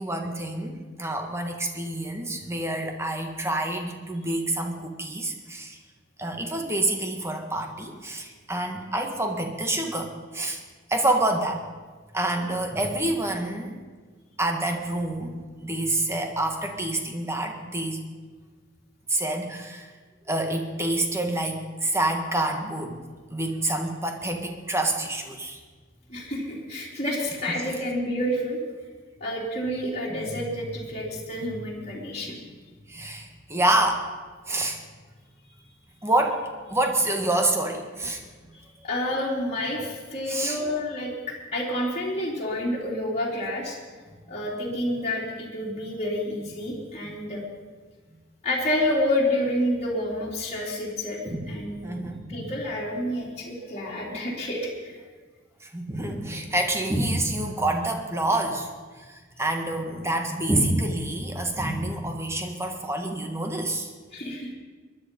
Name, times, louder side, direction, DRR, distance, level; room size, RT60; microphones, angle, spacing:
voice 1, 0.0-5.8 6.2-10.6 10.9-11.6 12.1-13.8 14.4-18.0 19.1-19.9 20.3-23.0 23.3-25.6 27.5-27.6 30.1-30.4 32.9-34.1 34.5-34.8 36.0-38.2 40.3-40.6 47.0-47.1 51.2-51.5 51.8-52.5 55.6-58.7 59.0-63.9, right 1 dB, 15° right, 3 dB, 1.6 m, -27 dB
voice 2, 26.1-28.6 29.2-32.4 38.5-43.8 44.3-47.4 48.4-51.8 52.3-55.0 64.1-64.5, left 1 dB, 35° left, -5 dB, 3.1 m, -29 dB
22.0 x 11.0 x 5.3 m, 1.4 s
head